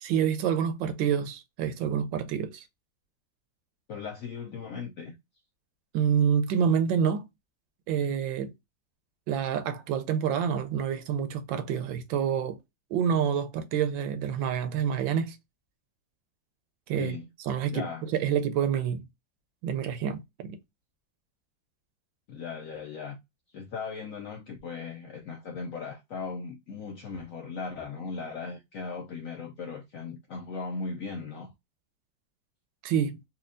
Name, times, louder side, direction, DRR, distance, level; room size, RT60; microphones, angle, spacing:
voice 1, 0.0-2.6 5.9-7.3 7.9-8.5 9.3-12.6 12.9-15.4 16.9-17.2 17.5-19.0 19.6-20.6 32.8-33.2, right 8 dB, 85° right, 1.4 m, -27 dB
voice 2, 3.9-5.2 17.0-17.3 17.7-18.0 22.3-23.2 23.5-31.5, left 4 dB, 75° left, 0.7 m, -38 dB
4.2 x 2.3 x 2.5 m
omnidirectional pair, 2.1 m